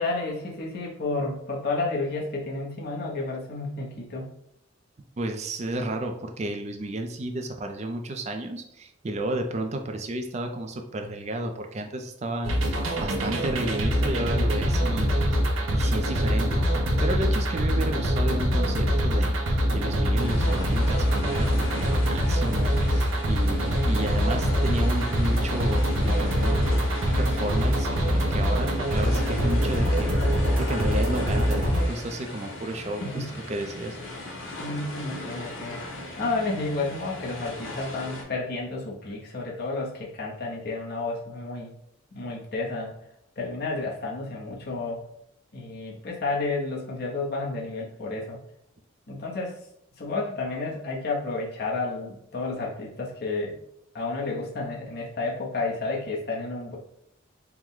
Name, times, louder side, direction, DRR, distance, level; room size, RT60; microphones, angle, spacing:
voice 1, 0.0-4.3 33.0-33.4 34.6-35.8 36.2-41.7 42.1-42.9 43.4-45.0 45.5-48.4 49.1-49.6 50.0-53.6 53.9-56.8, left 3 dB, 50° left, -2 dB, 0.8 m, -31 dB
voice 2, 5.2-15.4 15.7-16.6 17.0-19.4 19.7-26.8 27.2-30.2 30.6-34.0, right 1 dB, 35° right, 5 dB, 0.4 m, -32 dB
sound 1, 12.4-31.8, equal, 80° right, 0.7 m, -24 dB
sound 2, 20.2-38.2, left 1 dB, 80° left, 1.0 m, -38 dB
4.5 x 2.1 x 3.7 m, 0.75 s
head